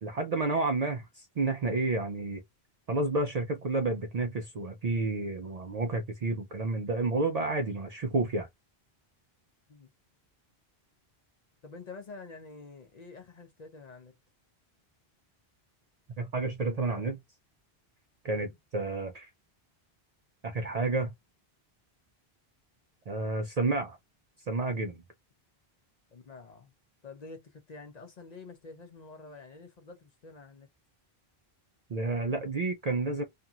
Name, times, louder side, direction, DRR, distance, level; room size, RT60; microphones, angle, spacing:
voice 1, 0.0-2.4 2.9-8.5 16.2-17.2 18.2-19.3 20.4-21.1 23.1-24.0 24.5-25.0 31.9-33.2, right 3 dB, 55° right, 0.4 m, -30 dB
voice 2, 11.6-14.1 18.3-18.6 26.1-26.7 27.0-30.7, left 4 dB, 50° left, 0.6 m, -48 dB
2.8 x 2.5 x 2.3 m
omnidirectional pair, 1.1 m